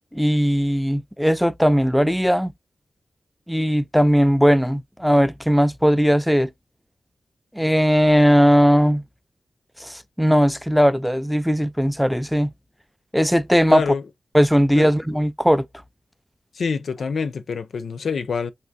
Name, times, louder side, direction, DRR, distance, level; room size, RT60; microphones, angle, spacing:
voice 1, 0.1-2.5 3.5-6.5 7.6-9.0 9.8-12.5 13.1-13.8 14.3-15.6, equal, ahead, 0.3 m, -18 dB
voice 2, 13.7-14.0 14.7-14.9 16.5-18.5, left 5 dB, 80° left, 0.4 m, -26 dB
3.3 x 2.7 x 2.6 m
wide cardioid pair, 140°, 0 cm